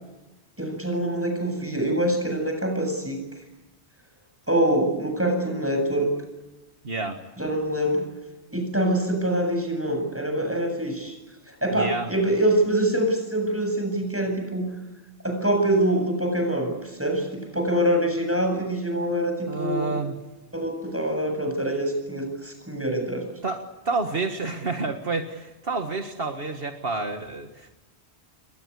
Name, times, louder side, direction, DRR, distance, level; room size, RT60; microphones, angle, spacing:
voice 1, 0.6-3.2 4.5-6.1 7.4-8.1 8.5-11.2 11.5-14.7 15.2-19.9 20.5-23.3, right 1 dB, 10° right, 4 dB, 7.8 m, -25 dB
voice 2, 6.8-7.2 11.7-12.1 19.5-20.2 23.4-27.7, right 3 dB, 60° right, 4 dB, 2.0 m, -29 dB
29.5 x 22.5 x 8.4 m, 1.1 s
omnidirectional pair, 1.1 m